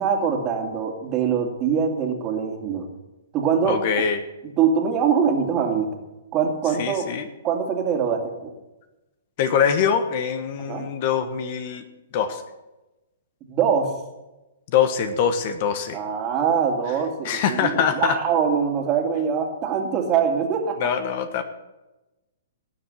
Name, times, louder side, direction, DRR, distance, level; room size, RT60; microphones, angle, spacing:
voice 1, 0.0-2.9 3.3-3.8 4.4-5.9 6.3-7.0 7.4-8.5 10.6-10.9 13.5-13.9 15.9-20.9, right 7 dB, 25° right, 3 dB, 2.4 m, -23 dB
voice 2, 3.6-4.2 6.8-7.3 9.4-11.8 12.1-12.4 14.7-16.0 17.2-18.2 20.8-21.4, left 7 dB, 45° left, 10 dB, 1.4 m, -23 dB
18.5 x 7.4 x 6.5 m, 1.0 s
hypercardioid pair, 145°, 0 cm